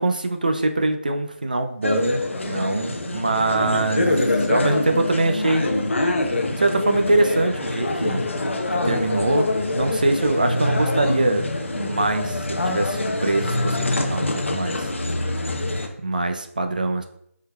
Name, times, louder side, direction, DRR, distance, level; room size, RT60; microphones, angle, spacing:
voice 1, 0.0-5.7 6.6-8.3 8.7-14.9 16.0-17.1, right 2 dB, 35° right, 6 dB, 0.4 m, -23 dB
sound 1, 1.8-15.9, left 2 dB, 55° left, 0.7 m, -25 dB
5.4 x 3.8 x 2.2 m, 0.72 s
figure-of-eight pair, 175°, 8 cm